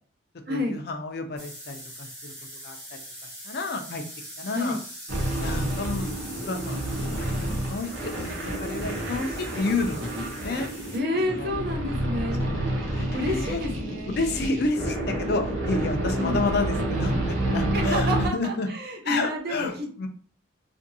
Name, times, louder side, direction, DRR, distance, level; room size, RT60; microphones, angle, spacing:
voice 1, 0.5-2.3 2.6-2.8 3.4-4.0 4.4-4.8 5.4-6.1 6.5-10.7 11.4-11.5 12.4-13.6 14.2-18.7 19.0-20.1, left 3 dB, 50° left, 5 dB, 0.5 m, -30 dB
sound 1, 1.4-11.0, equal, 15° right, 0.9 m, -42 dB
sound 2, 5.1-18.3, right 1 dB, 80° right, 0.9 m, -29 dB
voice 2, 10.9-12.5 13.1-14.1 16.2-16.5 17.7-20.1, left 1 dB, 50° right, 2 dB, 0.6 m, -29 dB
2.7 x 2.6 x 2.6 m, 0.43 s
head